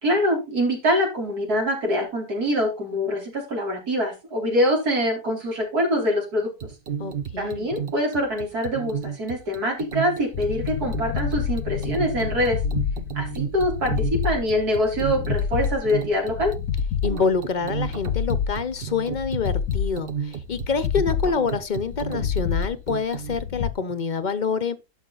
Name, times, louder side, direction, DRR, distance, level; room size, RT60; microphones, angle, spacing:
voice 1, 0.0-6.5 7.4-12.6 13.1-16.5, equal, 80° right, 4.5 m, -24 dB
sound 1, 6.6-23.4, right 7 dB, 45° right, 0.9 m, -33 dB
voice 2, 7.0-7.7 17.0-24.8, left 5 dB, 40° left, 0.8 m, -26 dB
sound 2, 10.3-23.7, left 8 dB, 70° left, 1.2 m, -28 dB
11.5 x 6.3 x 3.9 m
omnidirectional pair, 1.6 m